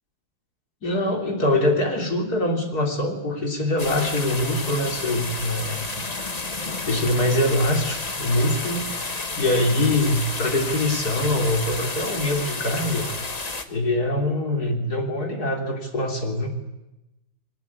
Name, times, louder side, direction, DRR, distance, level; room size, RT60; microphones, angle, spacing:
voice 1, 0.8-5.9 6.9-8.9 9.4-13.1 13.7-16.5, left 1 dB, 50° left, 3 dB, 3.8 m, -23 dB
sound 1, 3.8-13.6, left 3 dB, 25° left, 1.3 m, -31 dB
22.0 x 20.5 x 9.6 m, 0.98 s
omnidirectional pair, 2.2 m